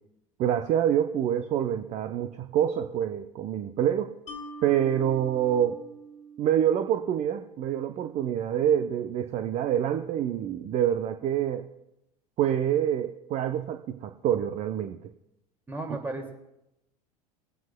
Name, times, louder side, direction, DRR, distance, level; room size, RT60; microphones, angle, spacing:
voice 1, 0.4-4.1 4.6-5.8 6.4-11.7 12.4-15.1, right 10 dB, 35° right, 7 dB, 0.6 m, -26 dB
Mallet percussion, 4.3-7.5, right 2 dB, 35° left, 1.8 m, -45 dB
voice 2, 15.7-16.3, right 2 dB, 10° right, 3 dB, 2.2 m, -34 dB
21.5 x 9.2 x 2.2 m, 0.85 s
hypercardioid pair, 80°, 19 cm